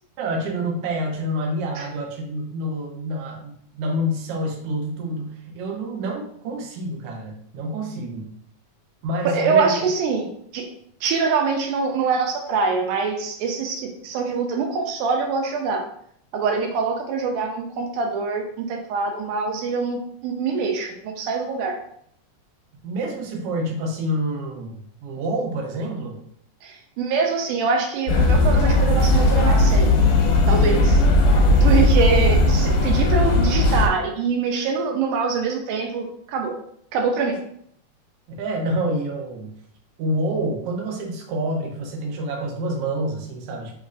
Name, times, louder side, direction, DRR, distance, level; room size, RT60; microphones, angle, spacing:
voice 1, 0.2-8.3 9.0-9.7 22.8-26.2 30.9-31.1 38.3-39.5 40.0-43.8, right 1 dB, 70° right, 0 dB, 1.5 m, -28 dB
voice 2, 9.3-10.3 10.5-10.7 11.0-15.8 16.3-21.8 26.6-29.9 30.5-30.9 31.6-36.6 36.9-37.4, right 5 dB, 90° right, 2 dB, 2.2 m, -24 dB
sound 1, 28.1-33.9, left 2 dB, 85° left, 2.4 m, -17 dB
5.1 x 3.2 x 2.5 m, 0.67 s
omnidirectional pair, 3.6 m